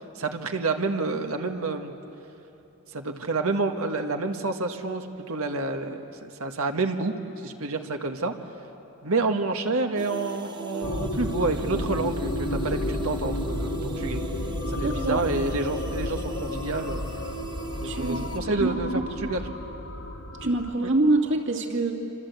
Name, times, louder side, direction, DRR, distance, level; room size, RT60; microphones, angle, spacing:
voice 1, 0.1-1.9 2.9-7.1 7.4-8.3 9.0-14.2 14.7-17.0 17.8-18.9 19.2-19.4, right 3 dB, 75° right, 5 dB, 1.5 m, -28 dB
sound 1, 10.0-18.4, right 3 dB, 20° right, 1.1 m, -39 dB
sound 2, 10.8-20.7, left 1 dB, 85° left, 2.4 m, -32 dB
voice 2, 14.8-15.2 17.8-19.1 20.4-21.9, right 2 dB, 60° right, 3 dB, 2.5 m, -25 dB
27.5 x 27.0 x 8.1 m, 2.9 s
head